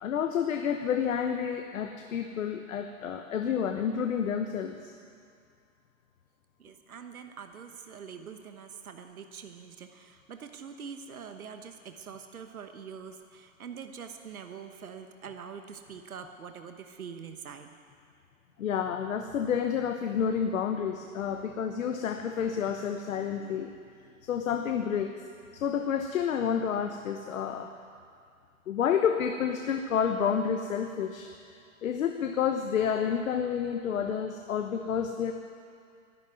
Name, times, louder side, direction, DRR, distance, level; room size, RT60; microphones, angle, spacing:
voice 1, 0.0-4.9 18.6-23.7 24.2-25.1 25.5-27.7 28.7-31.3 31.8-35.3, left 7 dB, 70° left, 5 dB, 1.2 m, -29 dB
voice 2, 6.6-17.7, right 6 dB, 85° right, 6 dB, 1.2 m, -44 dB
12.0 x 12.0 x 9.4 m, 2.3 s
hypercardioid pair, 125°, 42 cm